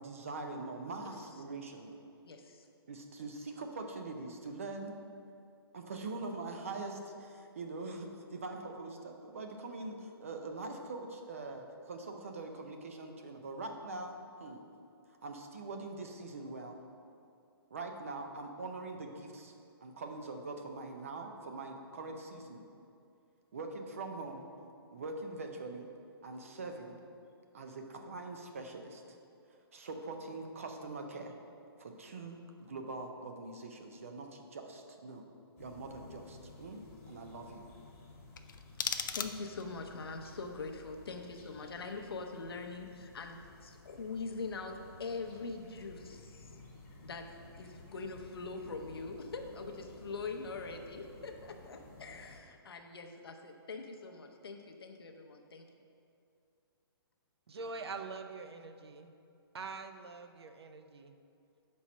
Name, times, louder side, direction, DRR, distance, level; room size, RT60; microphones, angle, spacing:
voice 1, 0.0-1.9 2.9-5.0 5.7-14.6 15.2-16.8 17.7-19.5 19.8-22.7 23.5-24.5 24.9-25.9 26.2-27.0 27.5-29.2 29.7-31.3 31.8-35.2 35.6-36.8 37.1-37.7, right 3 dB, 35° right, 4 dB, 0.5 m, -43 dB
voice 2, 2.2-2.7 39.1-46.5 47.0-47.3 47.6-55.7, left 4 dB, 65° left, 4 dB, 0.7 m, -43 dB
sound 1, 35.6-52.4, left 2 dB, 30° left, 1.3 m, -55 dB
sound 2, 38.3-39.8, left 6 dB, 50° left, 0.4 m, -38 dB
voice 3, 57.5-59.1 59.5-61.2, right 4 dB, 80° right, 8 dB, 0.6 m, -44 dB
5.4 x 4.3 x 6.1 m, 2.6 s
hypercardioid pair, 180°, 13 cm